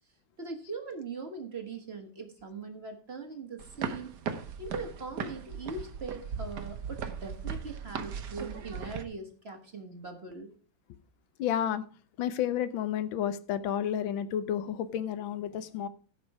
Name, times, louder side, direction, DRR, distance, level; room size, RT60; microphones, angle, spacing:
voice 1, 0.4-4.1 4.6-10.5, right 3 dB, 35° right, 1.5 m, -41 dB
sound 1, 3.6-9.0, right 7 dB, 65° right, 1.5 m, -38 dB
voice 2, 11.4-11.8 12.2-15.9, left 10 dB, 80° left, 1.5 m, -31 dB
16.5 x 5.4 x 4.7 m
omnidirectional pair, 2.1 m